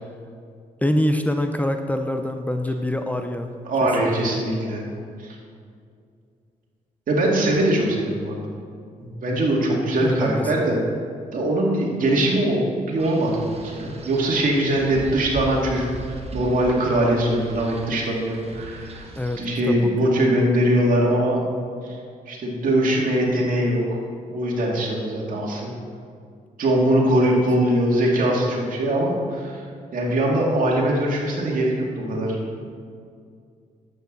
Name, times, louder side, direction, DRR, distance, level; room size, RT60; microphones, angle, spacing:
voice 1, 0.8-3.5 3.8-4.4 10.0-10.8 19.2-20.5 27.2-27.4, left 1 dB, 10° left, 6 dB, 0.7 m, -26 dB
voice 2, 3.6-4.8 5.2-5.4 7.1-8.4 9.2-10.8 11.3-19.0 19.4-21.4 21.8-22.0 22.3-24.0 24.3-25.7 26.6-29.6 29.9-32.6, right 1 dB, 65° right, -2 dB, 2.4 m, -22 dB
Wind, 13.0-19.6, right 2 dB, 40° right, 1.2 m, -38 dB
11.0 x 8.3 x 4.0 m, 2.2 s
cardioid pair, 70°, 15 cm